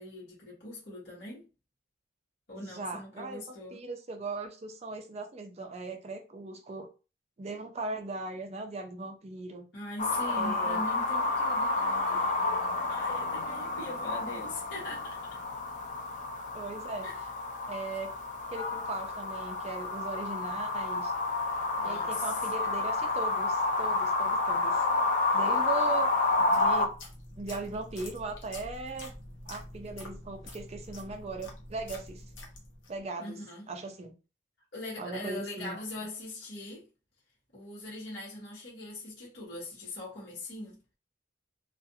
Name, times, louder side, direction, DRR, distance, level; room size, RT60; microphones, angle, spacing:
voice 1, 0.0-1.5 2.5-3.8 9.7-15.4 17.0-17.2 21.8-22.2 33.2-33.7 34.7-36.9 37.5-40.8, left 2 dB, 60° left, 1.2 m, -41 dB
voice 2, 2.6-3.4 3.7-6.9 7.4-9.7 10.3-10.8 16.5-17.1 17.7-18.1 18.5-21.1 21.8-24.9 25.3-26.1 26.5-26.9 27.4-29.1 29.5-32.2 32.9-33.4 33.7-34.1 35.0-35.8, right 3 dB, 35° right, 0.4 m, -38 dB
sound 1, 10.0-26.9, left 3 dB, 40° left, 0.3 m, -30 dB
sound 2, 26.3-33.0, left 1 dB, 75° left, 0.8 m, -46 dB
2.4 x 2.4 x 2.7 m
head